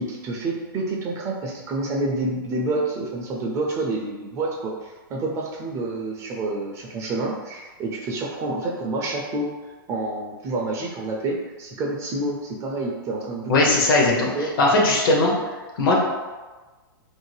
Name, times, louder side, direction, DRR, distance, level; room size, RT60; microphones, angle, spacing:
voice 1, 0.0-9.5 9.9-13.8 14.1-14.5, right 2 dB, 25° right, -1 dB, 0.4 m, -28 dB
voice 2, 13.5-14.3 14.6-15.3 15.8-15.9, left 2 dB, 60° left, -1 dB, 0.8 m, -18 dB
2.6 x 2.1 x 3.2 m, 1.3 s
hypercardioid pair, 125°, 12 cm